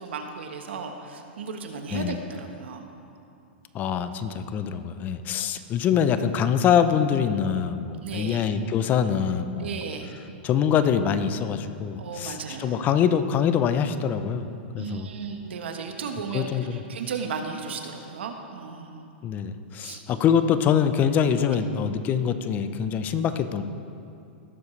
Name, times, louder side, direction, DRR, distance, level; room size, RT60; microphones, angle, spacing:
voice 1, 0.0-2.8 8.0-8.4 9.6-10.1 12.0-12.9 14.8-19.1 19.8-20.0 21.5-21.6, right 5 dB, 80° right, 4 dB, 1.2 m, -35 dB
voice 2, 3.7-9.8 10.4-14.5 14.7-15.1 16.3-16.8 19.2-23.6, left 8 dB, 30° left, 11 dB, 0.5 m, -24 dB
18.0 x 7.2 x 3.2 m, 2.6 s
hypercardioid pair, 130°, 6 cm